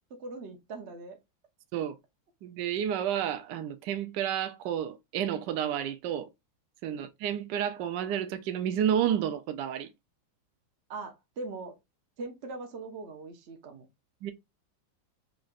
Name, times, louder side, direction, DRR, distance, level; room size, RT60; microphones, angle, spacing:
voice 1, 0.1-1.2 6.8-7.0 10.9-11.8 12.2-13.9, right 3 dB, 55° right, 0.7 m, -41 dB
voice 2, 2.4-6.3 6.8-9.9 14.2-14.3, right 9 dB, 75° right, 1.1 m, -30 dB
5.2 x 3.3 x 2.4 m
omnidirectional pair, 2.2 m